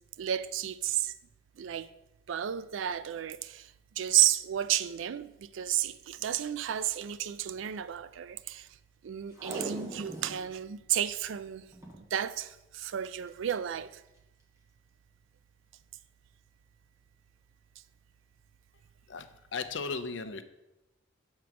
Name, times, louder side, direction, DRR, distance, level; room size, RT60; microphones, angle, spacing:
voice 1, 0.2-1.1 1.6-1.9 2.3-8.7 9.0-11.6 12.1-14.0, right 11 dB, 70° right, 0.3 m, -32 dB
Packing tape duct tape, 9.3-10.4 10.8-11.1 11.7-12.0 13.0-13.3 13.9-14.0, right 2 dB, 15° right, 1.1 m, -40 dB
voice 2, 19.1-20.4, left 4 dB, 65° left, 0.5 m, -36 dB
7.3 x 3.7 x 5.8 m
head